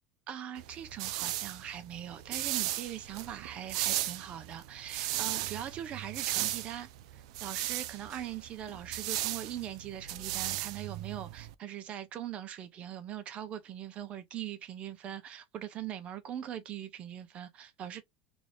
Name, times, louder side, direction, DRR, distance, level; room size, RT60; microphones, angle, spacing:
voice 1, 0.3-18.0, right 10 dB, 35° right, 0.7 m, -41 dB
sound 1, 0.6-11.5, right 14 dB, 75° right, 0.4 m, -36 dB
3.0 x 2.6 x 3.1 m
supercardioid pair, 135°, 3 cm